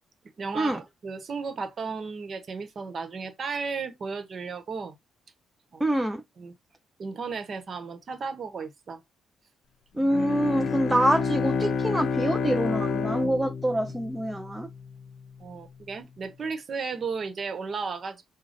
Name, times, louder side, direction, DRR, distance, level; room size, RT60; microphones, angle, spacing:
voice 1, 0.4-4.9 5.7-5.8 6.4-6.5 7.0-9.0 15.4-18.2, right 5 dB, 50° right, 1.1 m, -34 dB
voice 2, 5.8-6.2 9.9-14.7, right 1 dB, 10° right, 0.5 m, -26 dB
Bowed string instrument, 10.0-14.8, left 5 dB, 70° left, 0.7 m, -29 dB
4.9 x 2.3 x 3.9 m
cardioid pair, 90°, 0 cm